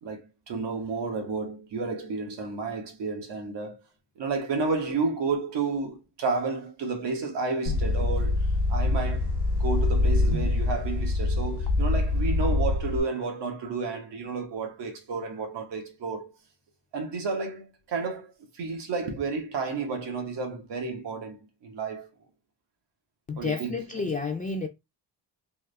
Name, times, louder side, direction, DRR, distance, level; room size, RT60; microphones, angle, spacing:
voice 1, 0.0-3.8 4.2-9.3 9.6-16.3 16.9-22.1 23.4-23.8, right 4 dB, 90° right, 1.3 m, -31 dB
sound 1, 7.7-13.0, left 2 dB, 75° left, 0.9 m, -25 dB
voice 2, 23.3-24.7, left 4 dB, 20° left, 0.3 m, -30 dB
3.6 x 2.6 x 3.3 m
wide cardioid pair, 165°, 41 cm